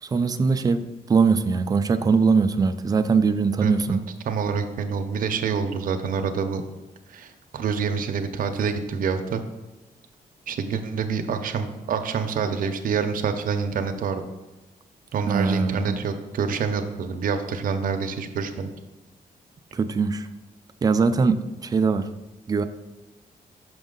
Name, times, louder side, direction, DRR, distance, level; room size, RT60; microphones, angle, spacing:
voice 1, 0.0-4.1 15.3-15.9 19.7-20.3 20.8-22.2 22.5-22.6, right 5 dB, 25° right, 10 dB, 0.3 m, -21 dB
voice 2, 3.6-4.0 4.3-6.6 7.1-9.4 10.5-14.2 15.1-18.7, right 6 dB, 65° right, 6 dB, 0.6 m, -27 dB
6.1 x 5.2 x 3.8 m, 1.1 s
wide cardioid pair, 140°, 15 cm